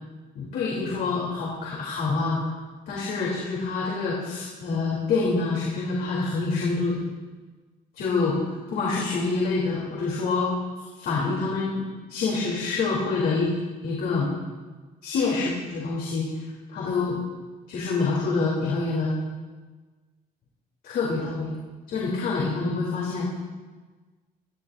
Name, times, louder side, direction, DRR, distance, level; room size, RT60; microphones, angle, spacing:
voice 1, 0.3-2.4 2.9-7.0 8.0-8.4 8.7-10.5 11.0-11.8 12.1-13.5 13.8-14.3 15.0-16.3 16.7-17.2 17.7-19.1 20.8-21.5 21.9-23.3, left 4 dB, 65° left, -5 dB, 3.3 m, -26 dB
19.5 x 14.0 x 2.6 m, 1.3 s
cardioid pair, 110°, 17 cm